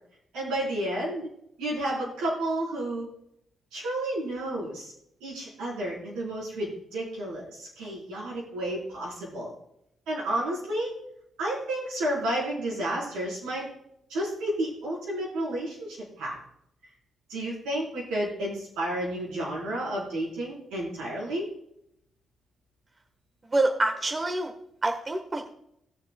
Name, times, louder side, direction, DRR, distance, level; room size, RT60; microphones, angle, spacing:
voice 1, 0.3-1.3 1.6-3.1 3.7-4.9 5.2-9.5 10.1-10.9 11.4-13.7 14.1-16.4 17.3-21.5, right 1 dB, 85° right, -4 dB, 4.1 m, -31 dB
voice 2, 23.5-24.5 24.8-25.5, right 2 dB, 35° right, 4 dB, 1.4 m, -26 dB
18.5 x 6.9 x 2.3 m, 0.77 s
supercardioid pair, 50°, 0 cm